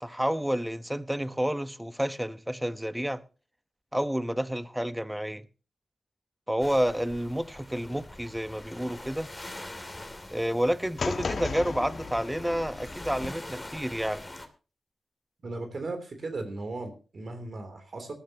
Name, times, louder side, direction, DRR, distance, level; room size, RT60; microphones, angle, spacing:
voice 1, 0.0-3.2 3.9-5.5 6.5-9.3 10.3-14.2, equal, 5° right, 1.0 m, -30 dB
sound 1, 6.6-14.5, left 1 dB, 15° left, 2.7 m, -44 dB
sound 2, 11.0-13.3, left 4 dB, 60° left, 1.3 m, -35 dB
voice 2, 15.4-18.1, right 2 dB, 55° right, 3.2 m, -36 dB
19.5 x 13.0 x 2.9 m
cardioid pair, 65°, 0 cm